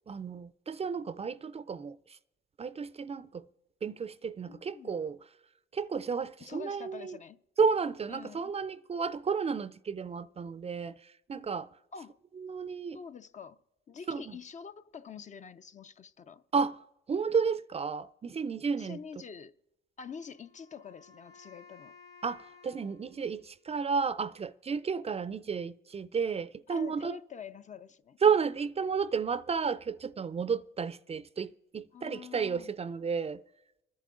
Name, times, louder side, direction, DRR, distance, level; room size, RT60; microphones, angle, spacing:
voice 1, 0.1-2.2 2.6-3.5 3.8-5.2 5.7-7.2 7.6-11.7 12.4-13.0 14.1-14.4 16.5-16.8 17.1-19.0 22.2-27.2 28.2-33.4, right 5 dB, 30° right, 0.4 m, -32 dB
voice 2, 4.5-4.9 6.4-7.4 8.1-8.5 11.9-12.2 12.9-13.6 13.9-16.4 18.7-19.5 20.0-22.0 26.7-28.2 31.9-32.7, left 6 dB, 40° left, 0.5 m, -46 dB
Wind instrument woodwind instrument, 20.1-24.1, left 5 dB, 70° left, 3.0 m, -57 dB
26.0 x 10.5 x 3.8 m
cardioid pair, 90°, 20 cm